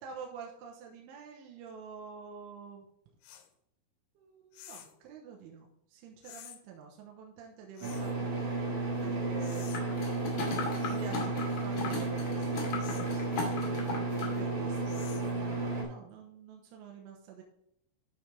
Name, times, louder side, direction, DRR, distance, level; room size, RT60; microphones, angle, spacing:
voice 1, 0.0-2.9 4.2-9.8 10.4-12.7 13.0-13.9 14.3-17.4, right 6 dB, 80° right, 0 dB, 3.2 m, -48 dB
sound 1, 3.2-3.5 4.5-5.0 6.2-6.6 7.8-8.2 9.4-9.8 10.8-11.1 12.8-13.1 14.8-15.4, left 11 dB, 80° left, 2.9 m, -50 dB
sound 2, 7.8-15.8, right 3 dB, 50° right, 1.4 m, -33 dB
sound 3, 9.7-14.4 14.7-14.8, left 4 dB, 60° left, 1.8 m, -37 dB
11.0 x 6.0 x 3.3 m, 0.74 s
omnidirectional pair, 5.8 m